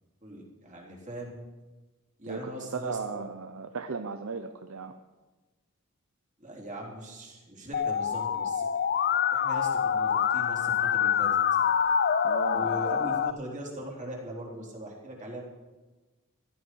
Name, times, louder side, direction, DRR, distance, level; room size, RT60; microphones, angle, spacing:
voice 1, 0.2-1.4 2.2-3.3 6.4-8.7 9.3-11.6 12.5-15.4, right 1 dB, 35° right, -3 dB, 3.8 m, -40 dB
voice 2, 2.3-5.0 12.2-12.9, right 4 dB, 65° right, 8 dB, 0.6 m, -36 dB
Musical instrument, 7.7-13.3, left 8 dB, 45° left, 0.4 m, -26 dB
15.5 x 14.0 x 4.6 m, 1.2 s
head